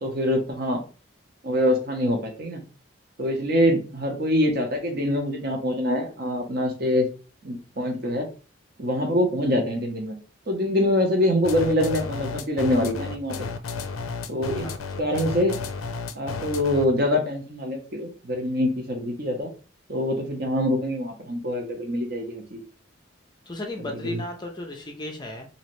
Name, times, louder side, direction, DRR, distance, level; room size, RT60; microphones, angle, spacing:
voice 1, 0.0-0.8 1.4-2.6 3.2-7.1 7.4-8.3 8.8-10.2 10.5-13.4 14.3-14.7 15.0-15.6 16.1-19.5 19.9-22.6 23.9-24.2, left 1 dB, 50° right, 3 dB, 0.8 m, -24 dB
sound 1, 11.4-17.0, left 4 dB, 90° left, 0.4 m, -32 dB
voice 2, 23.5-25.5, left 1 dB, 20° left, 3 dB, 0.4 m, -35 dB
3.1 x 2.7 x 3.0 m, 0.36 s
head